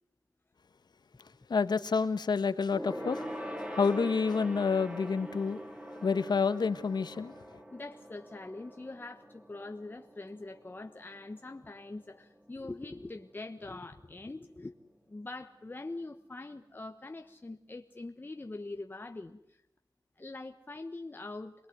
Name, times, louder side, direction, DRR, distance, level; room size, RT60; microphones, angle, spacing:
voice 1, 1.5-3.3 3.7-5.6 6.0-7.3, left 5 dB, 70° left, 1.5 m, -28 dB
Gong, 2.7-12.5 12.8-13.0 13.3-13.4, equal, 15° right, 2.8 m, -44 dB
voice 2, 7.7-14.7 15.1-19.6 20.2-21.7, left 2 dB, 25° left, 1.2 m, -43 dB
27.0 x 20.0 x 9.4 m
wide cardioid pair, 90°, 8 cm